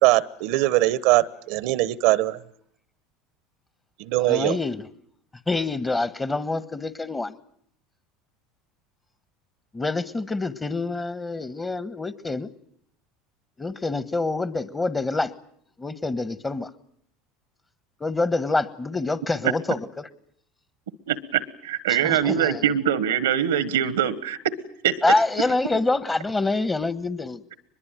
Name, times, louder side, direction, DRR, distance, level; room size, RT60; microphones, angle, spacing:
voice 1, 0.0-2.4 4.0-4.6, right 17 dB, 70° right, 1.0 m, -21 dB
voice 2, 4.2-4.9 5.5-7.3 9.7-12.5 13.6-15.3 15.8-16.7 18.0-20.1 21.9-22.6 25.0-27.4, left 3 dB, 15° left, 1.5 m, -26 dB
voice 3, 21.1-24.4 24.8-24.9, right 9 dB, 90° right, 1.3 m, -23 dB
23.0 x 21.5 x 9.1 m
hypercardioid pair, 90°, 0 cm